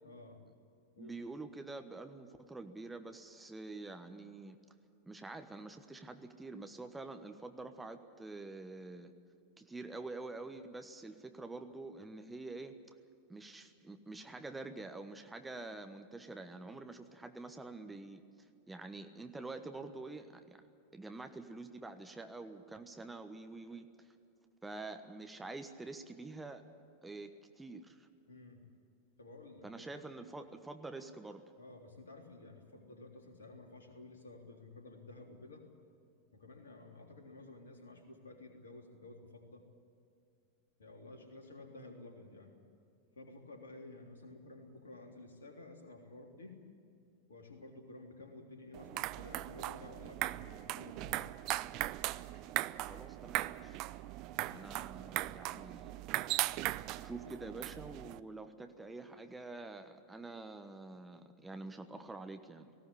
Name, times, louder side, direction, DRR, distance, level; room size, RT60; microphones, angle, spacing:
voice 1, 0.0-0.4 1.0-1.2 28.3-28.6 29.2-29.9 30.4-30.5 31.6-35.7 36.3-39.6 40.8-42.5 43.1-46.6 47.3-51.3 54.3-55.0, left 2 dB, 70° left, 3 dB, 3.5 m, -53 dB
voice 2, 1.0-4.6 5.1-9.1 9.6-12.9 13.3-20.6 20.9-24.1 24.6-26.6 27.0-28.1 29.6-31.4 52.9-53.8 54.5-56.6 57.0-62.7, right 3 dB, 10° right, 7 dB, 1.2 m, -47 dB
sound 1, 48.7-58.2, right 17 dB, 40° right, 0.6 m, -38 dB
18.5 x 17.0 x 9.9 m, 2.5 s
figure-of-eight pair, 90°, 0 cm